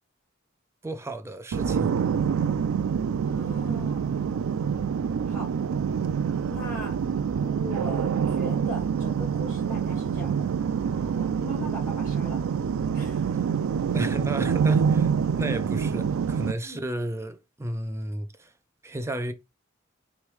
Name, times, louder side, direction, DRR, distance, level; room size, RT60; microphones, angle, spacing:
voice 1, 0.8-1.9 13.9-15.1 15.4-18.5 18.8-19.3, right 1 dB, 15° right, 0.4 m, -33 dB
sound 1, 1.5-16.5, right 7 dB, 85° right, 0.3 m, -26 dB
voice 2, 3.2-4.1 5.3-5.5 6.5-6.9 7.4-10.5 10.9-12.4 12.9-13.3 16.6-16.8, equal, 15° left, 2.1 m, -39 dB
3.5 x 3.1 x 3.1 m
head